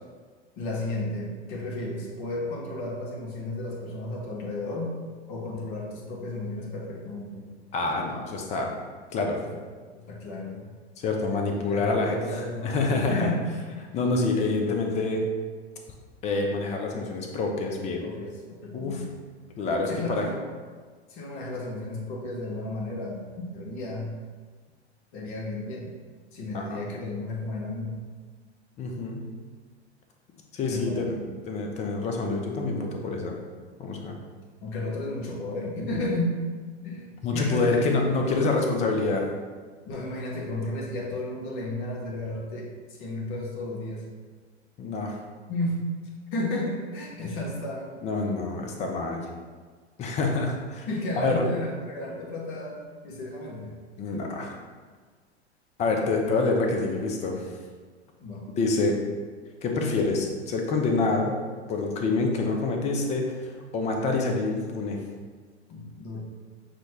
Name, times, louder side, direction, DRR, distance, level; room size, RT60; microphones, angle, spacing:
voice 1, 0.6-5.0 5.3-7.5 9.4-9.6 9.9-10.7 11.6-13.5 18.0-19.2 19.9-20.5 21.1-24.2 25.1-26.0 26.3-28.0 30.7-31.3 34.6-36.4 36.8-37.9 38.1-38.4 39.8-44.1 45.5-45.9 46.3-47.9 50.9-53.7 58.2-58.5 65.7-66.2, left 2 dB, 50° left, -2 dB, 1.0 m, -33 dB
voice 2, 7.7-8.7 9.1-9.4 11.0-13.3 13.9-15.2 16.2-18.0 18.7-19.0 19.6-20.2 26.5-26.8 28.8-29.3 30.5-31.1 31.5-33.3 33.8-34.2 37.2-39.2 44.8-45.2 48.0-49.2 50.0-50.9 51.2-51.4 54.0-54.6 55.8-57.5 58.6-59.0 59.6-61.4 61.7-65.0, left 3 dB, 20° left, 2 dB, 0.5 m, -27 dB
6.2 x 2.2 x 3.1 m, 1.5 s
figure-of-eight pair, 95°, 34 cm